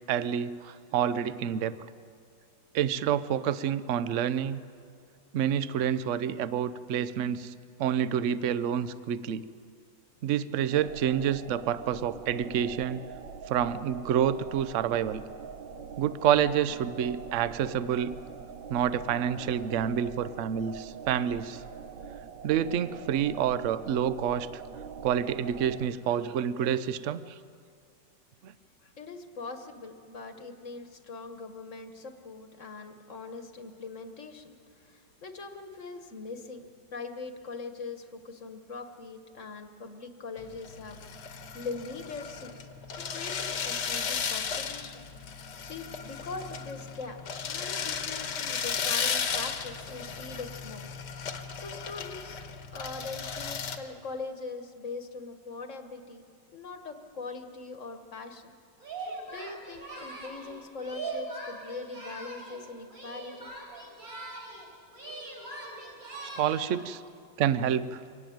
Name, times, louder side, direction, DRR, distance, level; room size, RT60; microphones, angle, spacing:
voice 1, 0.1-1.8 2.7-4.6 5.3-7.5 7.8-9.4 10.2-13.0 13.5-15.2 16.0-18.1 18.7-21.6 22.4-24.6 25.0-27.4 28.4-28.5 66.4-67.0 67.4-68.0, right 9 dB, 60° right, 15 dB, 0.8 m, -28 dB
sound 1, 10.7-25.9, right 6 dB, 80° right, 1.6 m, -44 dB
voice 2, 28.8-45.0 45.4-47.2 47.5-50.9 51.5-52.4 52.7-56.2 56.5-58.5 59.0-63.5 66.7-66.8, left 4 dB, 45° left, 8 dB, 1.5 m, -42 dB
sound 2, 40.4-53.8, left 6 dB, 65° left, 1.7 m, -35 dB
Singing, 58.8-62.6 62.9-64.7 64.9-66.8, right 2 dB, 45° right, 5.2 m, -41 dB
24.0 x 17.5 x 9.2 m, 2.3 s
omnidirectional pair, 2.0 m